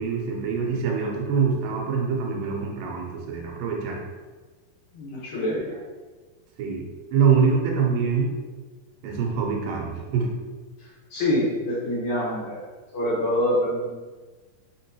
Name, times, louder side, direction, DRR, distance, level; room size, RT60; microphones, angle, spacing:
voice 1, 0.0-4.0 6.6-6.9 7.1-8.3 9.0-10.3, right 6 dB, 80° right, 0 dB, 2.3 m, -24 dB
voice 2, 4.9-5.7 10.8-12.6 12.9-13.9, left 1 dB, 65° left, -7 dB, 2.2 m, -26 dB
5.9 x 3.0 x 2.8 m, 1.3 s
omnidirectional pair, 4.1 m